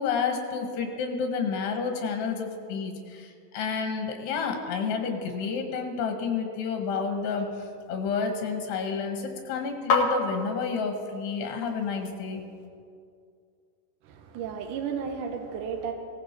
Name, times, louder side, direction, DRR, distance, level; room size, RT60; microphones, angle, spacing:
voice 1, 0.0-7.5 7.9-12.4, left 5 dB, 80° left, 4 dB, 3.7 m, -30 dB
sound 1, 6.8-12.7, left 3 dB, 50° left, 2.0 m, -34 dB
voice 2, 14.0-15.9, right 6 dB, 70° right, 4 dB, 2.1 m, -33 dB
18.0 x 17.0 x 4.6 m, 2.3 s
omnidirectional pair, 4.7 m